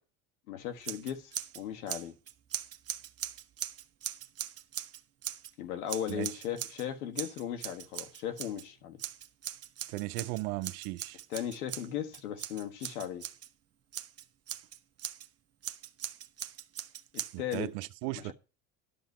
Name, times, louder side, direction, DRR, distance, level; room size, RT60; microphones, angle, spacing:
voice 1, 0.5-2.2 5.6-9.0 11.3-13.2 17.1-17.7, left 10 dB, 90° left, 1.6 m, -37 dB
Scissors, 0.8-1.6 1.9-5.5 5.9-6.9 7.2-8.7 9.0-13.5 13.9-15.3 15.6-17.6, right 11 dB, 35° right, 0.9 m, -40 dB
voice 2, 9.9-11.2 17.3-18.3, right 20 dB, 70° right, 0.9 m, -36 dB
11.5 x 5.7 x 6.6 m
supercardioid pair, 90°, 43 cm